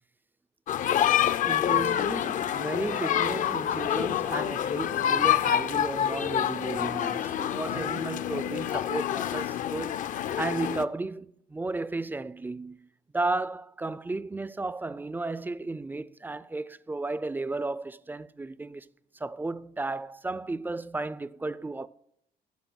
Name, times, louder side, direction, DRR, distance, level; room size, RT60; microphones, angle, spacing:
sound 1, 0.7-10.8, left 10 dB, 50° left, 0.5 m, -27 dB
voice 1, 1.4-12.9 13.1-18.9 19.1-21.9, right 2 dB, 10° right, 0.3 m, -34 dB
14.0 x 6.3 x 6.2 m
cardioid pair, 110°, 17 cm